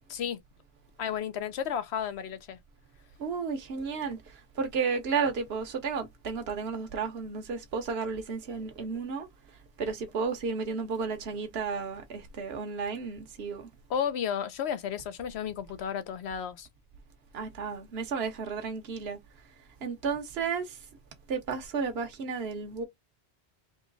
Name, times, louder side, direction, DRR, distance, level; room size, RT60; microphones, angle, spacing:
voice 1, 1.0-2.6 13.9-16.7, left 8 dB, 75° left, 1.0 m, -33 dB
voice 2, 3.2-9.3 9.8-13.7 17.3-19.2 19.8-20.8 21.3-22.8, right 5 dB, 70° right, 1.2 m, -33 dB
3.9 x 3.0 x 3.9 m
omnidirectional pair, 1.1 m